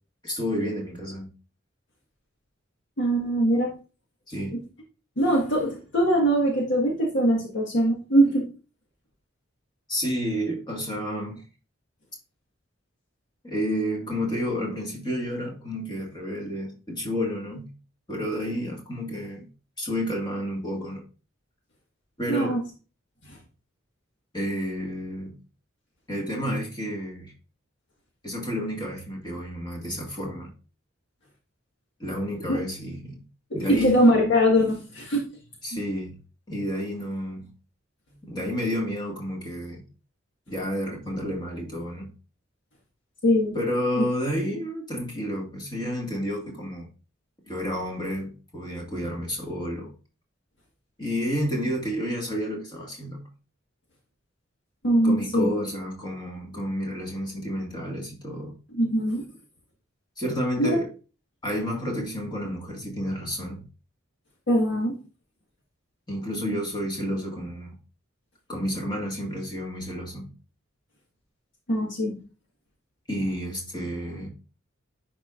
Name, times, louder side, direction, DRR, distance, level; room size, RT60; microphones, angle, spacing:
voice 1, 0.2-1.3 4.3-4.6 9.9-11.4 13.4-17.7 18.1-19.5 19.8-21.0 22.2-22.6 24.3-25.4 26.1-27.3 28.2-30.5 32.0-33.2 33.5-34.1 35.6-36.1 36.5-37.5 38.2-39.8 40.5-42.1 43.5-46.9 47.5-49.9 51.0-53.2 55.0-58.6 60.2-60.9 61.4-63.6 66.1-67.8 68.5-70.3 73.1-74.3, equal, 20° left, 1.9 m, -30 dB
voice 2, 3.0-3.7 5.2-8.5 22.3-22.6 23.3-23.4 32.5-32.6 33.5-35.2 35.7-35.8 43.2-43.6 44.0-44.1 54.8-55.5 58.7-59.3 60.6-60.8 64.5-65.0 71.7-72.2, equal, 65° left, 1.7 m, -22 dB
10.5 x 4.6 x 2.5 m
head